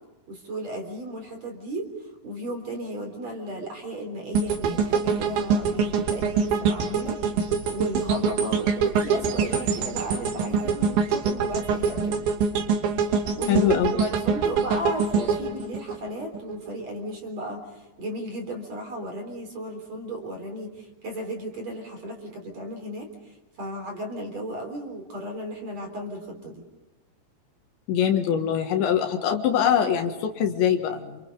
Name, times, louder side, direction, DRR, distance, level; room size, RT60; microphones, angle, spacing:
voice 1, 0.3-7.2 7.7-12.2 13.4-26.6, equal, 35° right, 3 dB, 4.5 m, -35 dB
sound 1, 4.3-16.5 16.9-17.1, right 6 dB, 65° right, 4.8 m, -25 dB
voice 2, 13.5-13.9 27.9-31.2, left 9 dB, 70° left, 5 dB, 3.7 m, -23 dB
28.5 x 28.5 x 5.5 m, 1.1 s
omnidirectional pair, 5.7 m